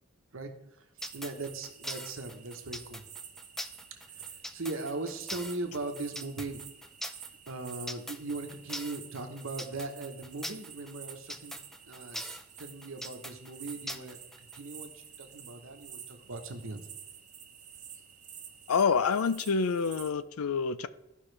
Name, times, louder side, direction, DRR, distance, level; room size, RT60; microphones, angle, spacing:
sound 1, 1.0-14.6, equal, ahead, 0.3 m, -41 dB
sound 2, 1.0-20.1, right 8 dB, 35° right, 0.9 m, -49 dB
voice 1, 1.1-3.0 4.5-6.6 7.5-11.6 11.9-14.2 14.5-14.9 15.2-16.8, right 2 dB, 65° right, 1.1 m, -39 dB
voice 2, 18.7-20.9, left 5 dB, 85° left, 0.5 m, -27 dB
14.0 x 5.6 x 3.3 m
head